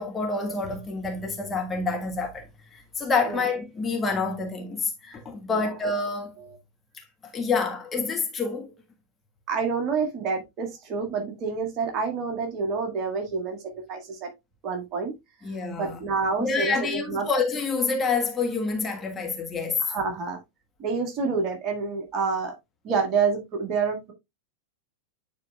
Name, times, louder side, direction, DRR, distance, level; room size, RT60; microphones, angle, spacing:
voice 1, 0.0-2.4 2.7-6.3 7.3-8.7 15.4-16.0 16.4-19.8, left 4 dB, 15° left, 1.5 m, -27 dB
voice 2, 9.5-13.6 13.9-14.3 14.6-15.1 15.8-17.3 19.8-20.4 20.8-22.5 22.8-24.1, right 5 dB, 35° right, 1.7 m, -28 dB
9.5 x 4.4 x 2.3 m
figure-of-eight pair, 90°, 0 cm